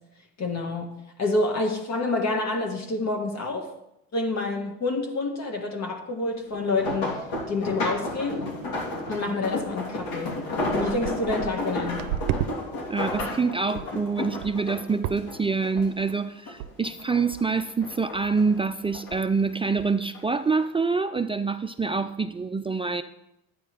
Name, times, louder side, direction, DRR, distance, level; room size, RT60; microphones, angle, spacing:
voice 1, 0.4-3.7 4.1-8.5 9.1-10.4 10.7-12.1, left 2 dB, 45° left, 2 dB, 1.6 m, -28 dB
sound 1, 6.5-16.1 16.5-17.4 17.8-19.1 19.9-20.2 20.6-20.7, left 2 dB, 75° left, 2.9 m, -32 dB
sound 2, 6.5-6.6 7.1-7.2 7.5-7.9 8.2-8.5 9.1-9.2 9.8-9.9 10.2-12.5 12.9-13.4 13.8-14.0 14.4-14.7 15.0-15.5 15.8-16.1 16.6-16.7 17.0-17.1 17.3-17.7 18.1-18.3 18.6-18.7 18.9-19.4 19.8-19.9, right 13 dB, 90° right, 0.6 m, -34 dB
voice 2, 12.9-23.0, right 4 dB, 15° right, 9 dB, 0.5 m, -26 dB
11.0 x 9.4 x 5.1 m, 0.87 s
supercardioid pair, 90°, 37 cm